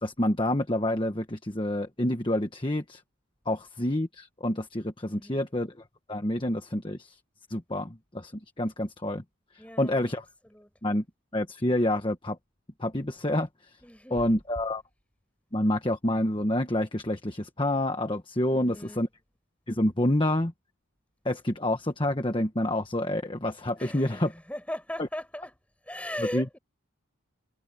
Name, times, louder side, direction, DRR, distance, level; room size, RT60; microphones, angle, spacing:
voice 1, 0.0-3.0 3.5-5.7 6.1-7.2 7.5-8.3 8.6-9.2 9.8-10.2 10.8-11.0 11.3-12.4 12.8-13.5 14.1-14.8 15.5-19.1 19.7-20.5 21.2-24.3 26.2-26.4, left 1 dB, 25° left, 1.3 m, -28 dB
voice 2, 5.1-5.5 9.6-10.2 10.4-10.7 13.8-14.3 18.5-19.1 23.8-25.5 25.8-26.6, left 1 dB, 5° left, 7.6 m, -38 dB
head